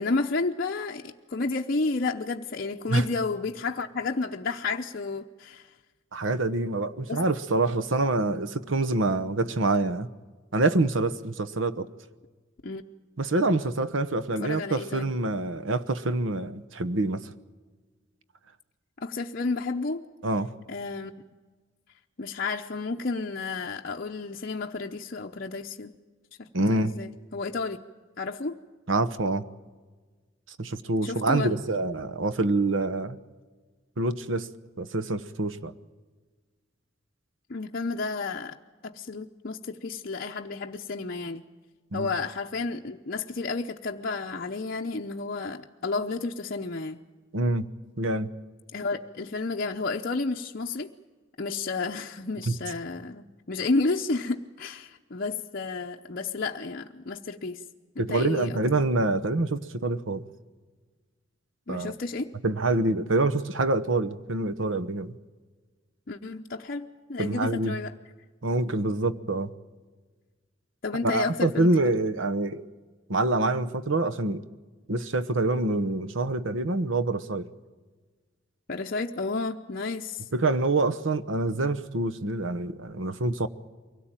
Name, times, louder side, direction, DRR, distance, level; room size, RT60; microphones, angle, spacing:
voice 1, 0.0-5.7 7.1-7.2 12.6-12.8 14.4-15.1 19.0-20.0 20.7-21.1 22.2-25.9 26.4-27.8 28.2-28.6 31.0-31.6 37.5-38.6 38.8-41.4 41.9-47.0 48.7-50.9 51.4-57.6 57.9-58.6 61.7-62.3 66.1-67.9 70.8-72.0 78.7-80.3, left 3 dB, 50° left, 0.8 m, -31 dB
voice 2, 6.1-10.1 10.5-11.9 13.2-17.2 20.2-20.5 26.5-26.9 28.9-29.4 30.6-33.2 34.0-34.5 34.8-35.7 41.9-42.1 47.3-47.7 48.0-48.3 52.5-52.6 58.0-60.2 61.7-61.9 62.4-65.1 67.2-67.7 68.4-69.5 71.0-72.7 73.1-74.4 74.9-77.5 80.3-83.5, right 2 dB, 85° right, 1.0 m, -26 dB
23.5 x 17.5 x 8.9 m
head